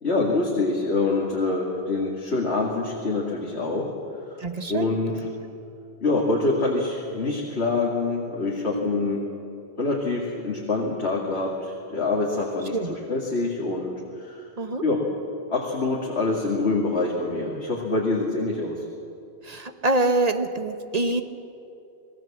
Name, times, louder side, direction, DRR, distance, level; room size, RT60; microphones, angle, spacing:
voice 1, 0.0-3.9 4.3-4.4 4.7-5.3 6.0-9.3 9.8-14.5 14.8-15.0 15.5-18.9, left 3 dB, 85° left, -2 dB, 2.6 m, -25 dB
voice 2, 4.4-4.9 8.7-9.0 12.7-13.0 14.6-14.8 19.4-21.2, right 2 dB, 40° right, 7 dB, 1.3 m, -25 dB
27.0 x 19.0 x 7.4 m, 2.6 s
omnidirectional pair, 1.1 m